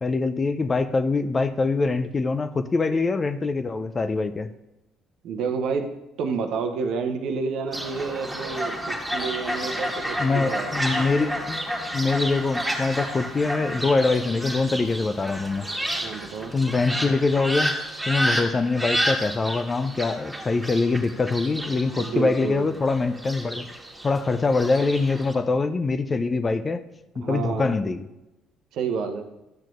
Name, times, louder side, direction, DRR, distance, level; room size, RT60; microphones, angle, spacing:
voice 1, 0.0-4.5 10.2-11.6 11.9-15.7 16.5-17.8 18.1-23.7 24.0-26.8 27.2-28.1, left 3 dB, 30° left, 11 dB, 0.4 m, -24 dB
voice 2, 5.2-5.9 6.2-10.8 16.0-16.5 22.0-22.7 27.1-27.8 28.7-29.2, right 5 dB, 60° right, 6 dB, 0.8 m, -29 dB
Fowl, 7.7-25.3, equal, 5° right, 1.7 m, -30 dB
11.5 x 7.4 x 2.5 m, 0.95 s
figure-of-eight pair, 50°, 0 cm